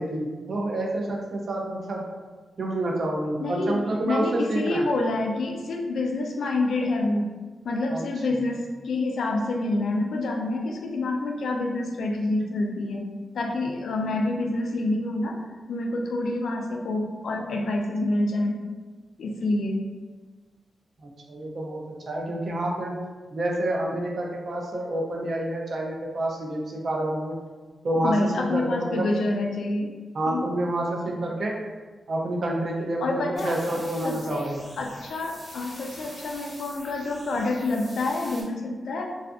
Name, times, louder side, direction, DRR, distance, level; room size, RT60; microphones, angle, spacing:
voice 1, 0.0-2.0 2.6-4.9 7.9-8.0 8.3-8.4 21.0-22.9 23.3-27.4 27.8-29.1 30.1-31.5 32.1-34.6, right 1 dB, 50° right, -1 dB, 0.4 m, -28 dB
voice 2, 3.4-7.3 7.6-13.0 13.3-15.4 15.7-18.6 19.2-19.8 28.0-29.9 30.3-30.4 33.0-33.6 34.0-39.1, left 2 dB, 75° left, 2 dB, 0.3 m, -27 dB
sound 1, 33.4-38.4, equal, 5° right, 0.8 m, -45 dB
2.6 x 2.4 x 2.3 m, 1.4 s
wide cardioid pair, 155°, 0 cm